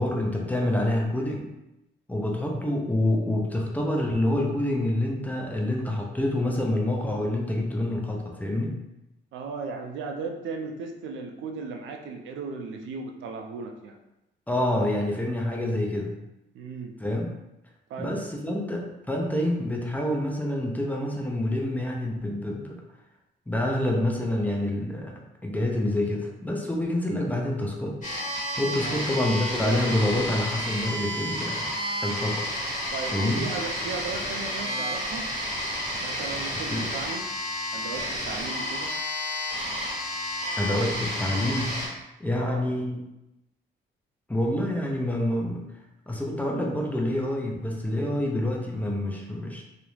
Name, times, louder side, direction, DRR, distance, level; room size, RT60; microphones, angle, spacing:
voice 1, 0.0-1.5 2.1-8.8 14.5-16.1 17.0-17.3 18.0-22.8 23.5-28.0 28.6-31.7 32.0-32.5 33.1-33.4 36.7-36.9 40.6-41.8 42.2-43.0 44.3-45.7 46.1-49.6, left 1 dB, 10° left, -1 dB, 0.4 m, -27 dB
voice 2, 9.3-14.0 16.5-16.9 17.9-18.2 28.8-29.0 32.9-35.3 36.0-37.3 37.7-38.9 42.3-42.7, right 4 dB, 75° right, 4 dB, 0.4 m, -36 dB
sound 1, 28.0-41.9, equal, 40° left, 1.1 m, -31 dB
2.3 x 2.0 x 3.1 m, 0.92 s
cardioid pair, 90°, 20 cm